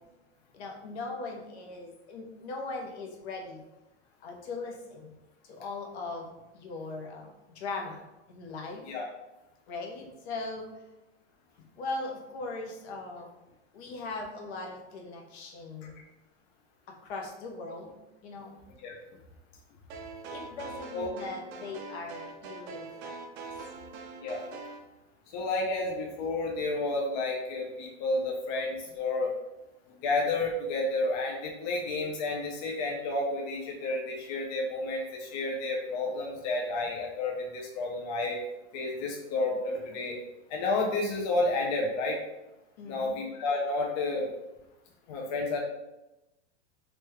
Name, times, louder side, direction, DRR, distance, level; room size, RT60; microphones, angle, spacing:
voice 1, 0.5-3.6 4.2-5.1 5.5-8.0 8.3-8.8 9.7-10.7 11.8-13.3 13.7-16.0 16.9-17.9 18.2-18.6 20.3-23.2 42.8-43.2, left 3 dB, 65° left, 1 dB, 0.8 m, -39 dB
sound 1, 19.9-24.8, right 4 dB, 50° right, 0.4 m, -43 dB
voice 2, 25.3-29.3 30.0-38.4 38.7-40.2 40.5-42.2 42.9-44.3 45.1-45.6, left 2 dB, 40° left, -1 dB, 0.4 m, -31 dB
3.0 x 2.3 x 3.1 m, 0.98 s
supercardioid pair, 150°, 35 cm